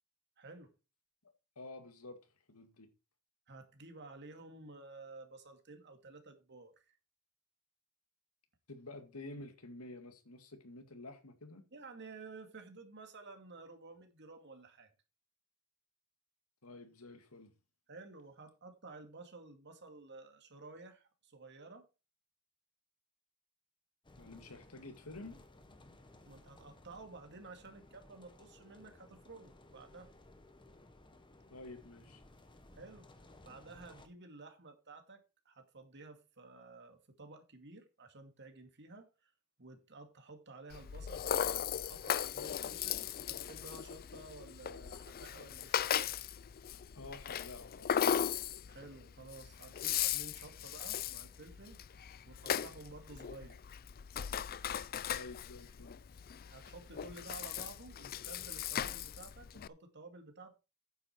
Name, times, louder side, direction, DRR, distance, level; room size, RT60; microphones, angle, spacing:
voice 1, 0.4-0.7 3.5-7.0 11.7-14.9 17.9-21.9 26.2-30.1 32.7-33.0 33.4-39.3 39.6-46.1 48.7-53.6 56.5-60.5, right 3 dB, 55° right, 2.2 m, -53 dB
voice 2, 1.6-2.2 2.5-2.9 8.7-11.6 16.6-17.5 24.2-25.4 31.5-32.2 46.9-47.9 55.1-56.0, left 2 dB, 80° left, 2.1 m, -50 dB
sound 1, 24.0-34.1, left 1 dB, 20° left, 1.4 m, -59 dB
Rattle (instrument), 40.7-59.7, left 9 dB, 45° left, 0.4 m, -38 dB
9.6 x 7.9 x 4.5 m
head